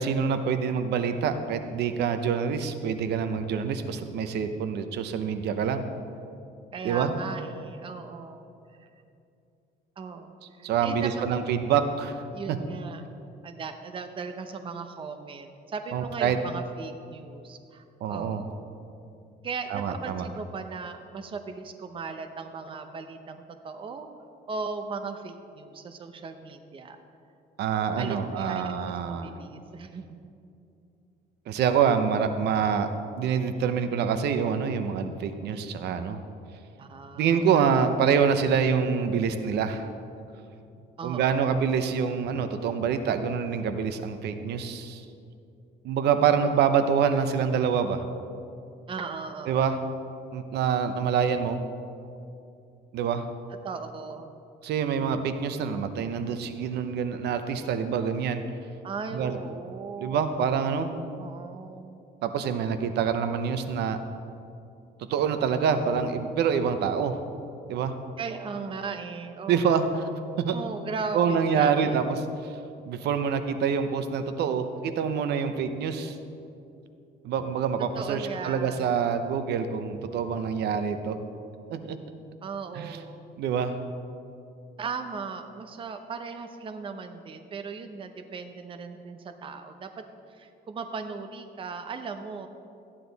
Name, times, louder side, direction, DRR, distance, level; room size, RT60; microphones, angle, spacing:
voice 1, 0.0-5.9 6.8-7.1 10.6-12.2 12.5-12.6 15.9-16.4 18.0-18.4 19.7-20.3 27.6-29.4 31.5-32.9 33.2-36.2 37.2-39.9 41.0-45.0 45.8-48.0 49.5-49.8 50.3-51.6 52.9-53.3 54.6-58.4 59.1-59.4 60.0-60.9 62.2-64.0 65.1-67.2 67.7-68.0 69.5-70.0 70.4-70.6 71.1-72.0 72.4-72.5 72.9-76.2 77.2-81.2 81.7-82.0 82.7-83.0 83.4-83.8, right 7 dB, 70° right, 9 dB, 0.7 m, -26 dB
voice 2, 6.7-8.5 8.8-8.9 10.0-11.4 12.3-13.0 13.4-18.7 19.4-24.1 24.5-27.0 28.0-28.6 29.1-30.2 36.8-37.7 41.0-41.5 48.9-49.8 53.6-54.3 58.8-60.3 61.2-62.0 68.2-69.8 70.5-72.2 77.9-78.9 82.4-83.2 84.8-90.0 90.3-92.5, right 5 dB, 30° right, 7 dB, 0.7 m, -37 dB
13.5 x 10.0 x 4.1 m, 2.6 s
cardioid pair, 140°, 18 cm